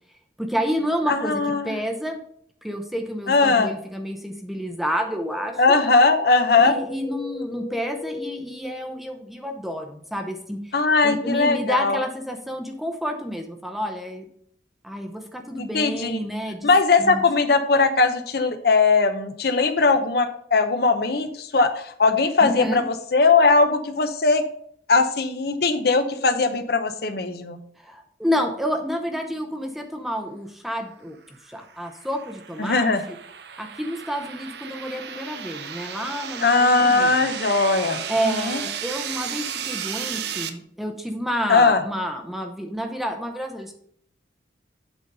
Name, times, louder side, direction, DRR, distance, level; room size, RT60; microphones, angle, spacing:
voice 1, 0.4-2.2 2.6-5.8 6.6-10.7 11.0-14.3 14.8-16.7 17.0-17.2 22.4-22.8 27.8-33.2 33.6-37.1 38.1-43.7, equal, ahead, 4 dB, 0.6 m, -29 dB
voice 2, 1.1-1.7 3.3-3.7 5.6-6.7 10.7-12.0 15.6-16.2 16.6-24.4 24.9-27.6 32.6-33.0 36.4-38.6 41.5-41.8, left 3 dB, 55° left, 8 dB, 0.7 m, -19 dB
Wind, 4.9-9.3 9.5-9.6, left 2 dB, 20° left, 1.0 m, -39 dB
sound 1, 31.5-40.5, right 8 dB, 60° right, 0.6 m, -34 dB
8.2 x 3.9 x 5.4 m, 0.66 s
head